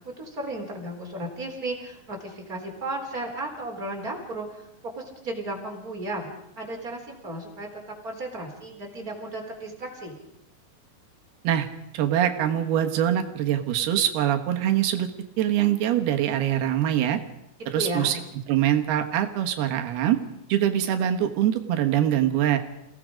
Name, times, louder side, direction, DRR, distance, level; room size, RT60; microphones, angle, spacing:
voice 1, 0.2-4.6 4.9-6.3 6.6-7.7 8.0-10.2 17.7-18.1, right 1 dB, 25° right, 1 dB, 3.9 m, -34 dB
voice 2, 11.9-15.1 15.4-17.2 17.7-18.2 18.5-20.2 20.5-22.6, right 11 dB, 90° right, 5 dB, 3.4 m, -23 dB
29.0 x 17.5 x 5.1 m, 0.80 s
omnidirectional pair, 4.4 m